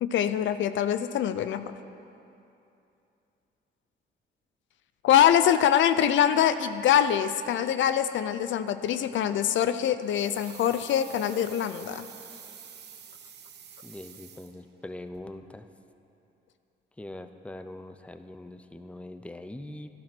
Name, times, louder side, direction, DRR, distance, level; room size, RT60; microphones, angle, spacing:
voice 1, 0.0-1.6 5.0-12.1, left 10 dB, 70° left, 12 dB, 0.6 m, -24 dB
sound 1, 10.1-14.9 15.1-15.2, right 8 dB, 60° right, 1.1 m, -47 dB
voice 2, 13.8-15.7 17.0-19.9, left 1 dB, 5° left, 9 dB, 0.7 m, -42 dB
13.0 x 11.5 x 6.1 m, 2.8 s
cardioid pair, 90°, 20 cm